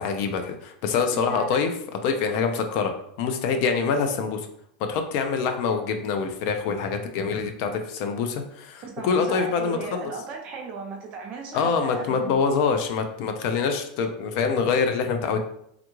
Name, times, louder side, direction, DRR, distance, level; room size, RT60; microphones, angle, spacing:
voice 1, 0.0-1.7 2.0-2.9 3.2-4.5 4.9-10.1 11.5-15.4, left 5 dB, 50° left, 6 dB, 0.4 m, -25 dB
voice 2, 1.1-1.6 8.8-12.4, right 5 dB, 35° right, 1 dB, 0.7 m, -36 dB
3.5 x 2.3 x 3.0 m, 0.74 s
supercardioid pair, 155°, 4 cm